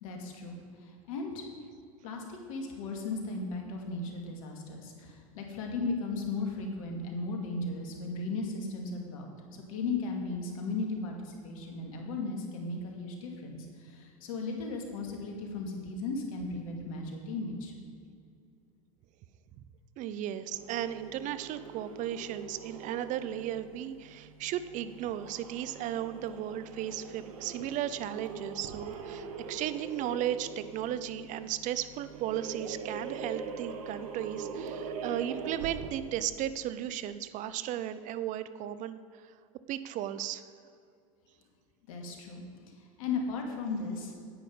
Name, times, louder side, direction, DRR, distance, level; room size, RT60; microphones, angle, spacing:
voice 1, 0.0-1.5 2.0-9.3 9.7-17.7 41.9-42.4 42.8-44.1, left 3 dB, 70° left, 2 dB, 2.2 m, -36 dB
voice 2, 20.0-39.3 39.7-40.4, right 11 dB, 45° right, 14 dB, 0.6 m, -35 dB
sound 1, 20.5-36.2, right 5 dB, 75° right, 1.2 m, -43 dB
9.6 x 9.0 x 5.4 m, 2.4 s
hypercardioid pair, 95°, 18 cm